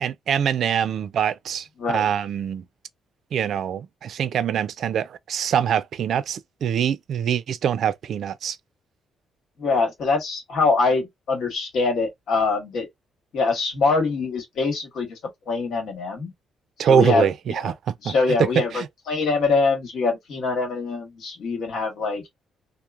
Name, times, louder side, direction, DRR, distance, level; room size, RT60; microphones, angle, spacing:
voice 1, 0.0-2.6 3.3-8.6 16.8-18.1 18.4-18.9, right 8 dB, 65° right, 0.4 m, -24 dB
voice 2, 9.6-12.9 13.3-15.2 15.5-16.3 16.8-17.3 17.6-17.7 18.0-22.2, left 4 dB, 70° left, 1.2 m, -24 dB
3.0 x 2.0 x 2.4 m
cardioid pair, 90°, 0 cm